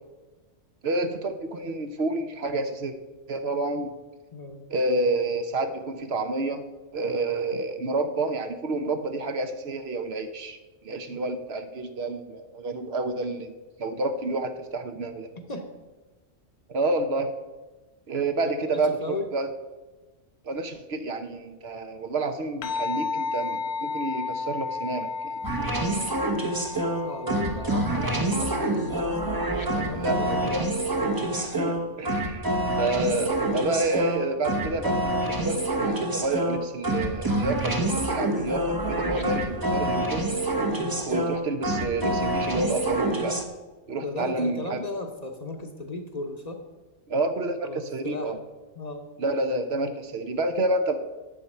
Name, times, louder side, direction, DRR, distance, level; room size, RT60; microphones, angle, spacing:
voice 1, 0.8-2.9 3.3-3.9 4.7-6.6 6.9-10.6 10.8-13.5 13.8-15.3 16.7-17.3 18.1-19.5 20.4-25.4 29.7-30.7 31.3-32.5 32.8-40.2 41.1-43.4 43.9-44.8 47.1-48.4 49.2-51.0, right 2 dB, 60° right, 7 dB, 1.0 m, -29 dB
voice 2, 4.3-4.6 11.1-11.2 15.5-15.7 18.7-19.3 27.0-29.2 29.8-30.7 40.8-41.1 44.0-46.6 47.6-48.3 48.8-49.0, left 2 dB, 35° left, 4 dB, 0.9 m, -35 dB
sound 1, 22.6-31.3, left 4 dB, 65° left, 0.9 m, -34 dB
sound 2, 25.4-43.4, right 1 dB, 20° right, 0.8 m, -27 dB
10.0 x 7.2 x 5.5 m, 1.2 s
omnidirectional pair, 1.3 m